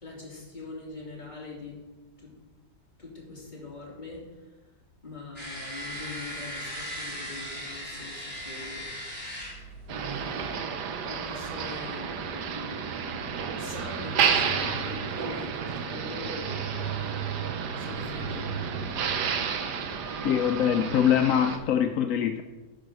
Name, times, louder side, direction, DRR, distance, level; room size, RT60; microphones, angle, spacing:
voice 1, 0.0-1.8 2.2-2.3 3.0-4.3 5.0-8.9 11.0-12.1 13.6-16.7 17.8-18.5, left 3 dB, 25° left, -4 dB, 2.9 m, -42 dB
sound 1, 5.4-10.5, equal, 5° left, 3.1 m, -38 dB
Motor vehicle (road), 9.9-21.6, right 6 dB, 75° right, 1.4 m, -31 dB
voice 2, 20.2-22.4, left 9 dB, 70° left, 6 dB, 0.8 m, -23 dB
10.0 x 5.8 x 6.1 m, 1.2 s
omnidirectional pair, 1.8 m